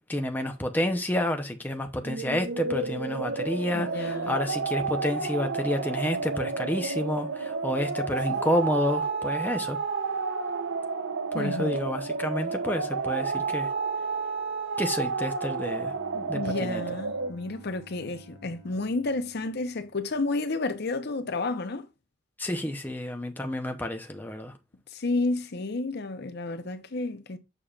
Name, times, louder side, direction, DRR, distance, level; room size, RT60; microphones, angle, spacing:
voice 1, 0.1-9.8 11.3-13.7 14.8-15.9 16.3-16.8 22.4-24.5, left 1 dB, 10° left, 0.7 m, -29 dB
sound 1, 2.0-17.3, right 4 dB, 70° right, 0.8 m, -31 dB
voice 2, 3.7-4.4 11.3-11.8 16.1-21.9 24.9-27.4, left 3 dB, 55° left, 0.7 m, -31 dB
Bowed string instrument, 15.5-20.4, right 1 dB, 20° right, 4.3 m, -52 dB
6.8 x 5.7 x 2.4 m
head